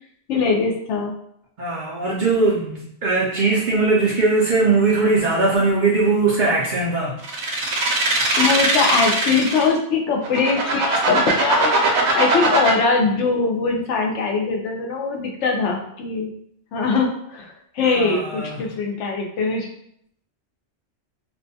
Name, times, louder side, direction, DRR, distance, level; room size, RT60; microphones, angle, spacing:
voice 1, 0.3-1.1 8.4-16.3 16.7-19.7, left 4 dB, 80° left, 1 dB, 0.9 m, -22 dB
voice 2, 1.6-7.2 17.9-18.7, right 3 dB, 60° right, -4 dB, 0.5 m, -20 dB
sound 1, 7.2-9.7 10.2-12.7, right 3 dB, 75° right, 0.9 m, -20 dB
2.5 x 2.2 x 2.6 m, 0.72 s
omnidirectional pair, 1.2 m